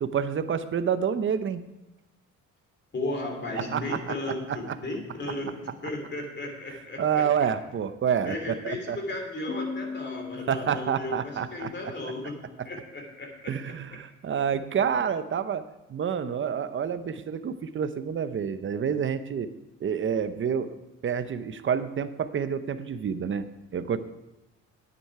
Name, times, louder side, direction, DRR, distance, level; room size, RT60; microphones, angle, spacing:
voice 1, 0.0-1.6 3.6-4.1 4.5-4.7 7.0-9.0 10.5-11.7 13.5-19.5 19.8-23.5 23.7-24.0, right 7 dB, 40° right, 12 dB, 0.7 m, -28 dB
voice 2, 2.9-7.3 8.2-13.5, left 2 dB, 35° left, 2 dB, 3.0 m, -35 dB
Piano, 9.5-12.9, left 4 dB, 75° left, 1.8 m, -40 dB
9.8 x 9.5 x 4.8 m, 0.95 s
cardioid pair, 90°, 30 cm